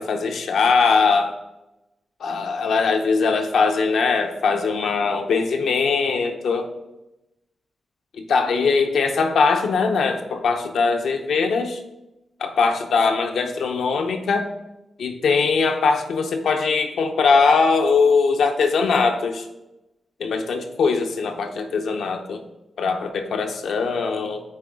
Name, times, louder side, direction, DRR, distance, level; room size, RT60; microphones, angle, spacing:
voice 1, 0.0-1.3 2.2-6.7 8.2-11.8 12.4-14.5 15.0-19.5 20.2-22.4 22.8-24.4, left 4 dB, 85° left, 5 dB, 0.7 m, -21 dB
8.9 x 3.7 x 3.6 m, 0.96 s
wide cardioid pair, 120°, 0 cm